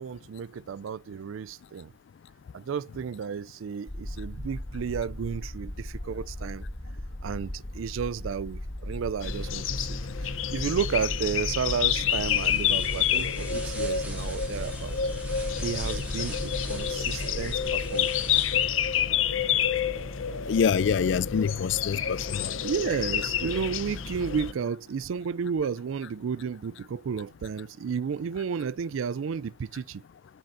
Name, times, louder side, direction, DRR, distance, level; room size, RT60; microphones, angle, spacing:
voice 1, 0.0-1.9 2.5-6.6 7.2-15.0 15.6-18.1 22.6-30.0, right 6 dB, 85° right, 0.4 m, -32 dB
sound 1, 3.9-17.9, left 1 dB, 25° left, 0.8 m, -38 dB
sound 2, 9.2-24.5, left 8 dB, 80° left, 0.8 m, -29 dB
sound 3, 12.0-18.9, right 1 dB, 10° right, 2.7 m, -44 dB
voice 2, 20.5-22.5, left 7 dB, 65° left, 0.3 m, -25 dB
7.8 x 6.6 x 2.6 m
head